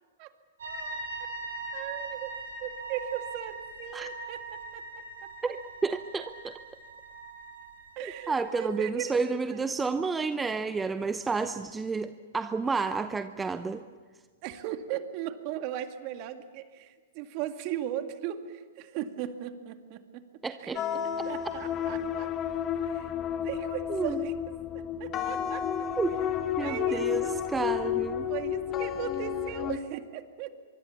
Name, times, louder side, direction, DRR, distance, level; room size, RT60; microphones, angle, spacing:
voice 1, 0.6-1.0 1.7-2.3 2.6-4.4 4.7-4.8 5.2-5.3 8.0-9.6 14.4-20.2 20.6-20.8 21.2-22.3 22.8-23.1 23.4-25.7 26.6-27.4 28.3-30.5, right 11 dB, 45° right, 8 dB, 2.0 m, -37 dB
sound 1, 0.6-8.8, right 2 dB, 75° right, 8.0 m, -41 dB
voice 2, 5.4-6.6 8.0-13.8 20.4-20.8 21.2-21.3 23.9-24.3 26.0-26.1 26.6-27.2 27.5-28.3, right 4 dB, 10° right, 10 dB, 0.8 m, -30 dB
sound 2, 20.8-29.8, left 9 dB, 30° left, 1.7 m, -31 dB
24.5 x 23.5 x 7.1 m, 1.5 s
hypercardioid pair, 115°, 0 cm